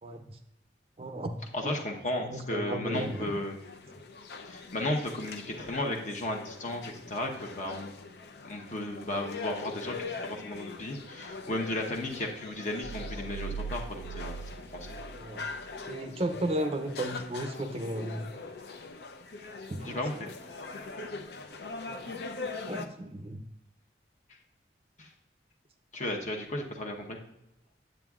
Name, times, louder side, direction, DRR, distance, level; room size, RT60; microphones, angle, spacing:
voice 1, 0.0-0.4 1.0-1.3 1.6-1.7 2.2-3.4 15.2-15.4 15.9-18.2 19.7-20.3 21.9-22.2 22.7-23.4, right 1 dB, 35° right, 7 dB, 0.5 m, -35 dB
voice 2, 1.5-3.6 4.5-7.9 8.4-14.4 14.7-15.0 19.8-20.3 25.0-25.1 25.9-27.2, left 1 dB, 40° left, 1 dB, 1.0 m, -34 dB
sound 1, 2.9-22.9, left 4 dB, 65° left, 0.6 m, -42 dB
sound 2, 12.8-15.8, right 5 dB, 85° right, 0.7 m, -40 dB
9.1 x 8.0 x 2.4 m, 0.86 s
head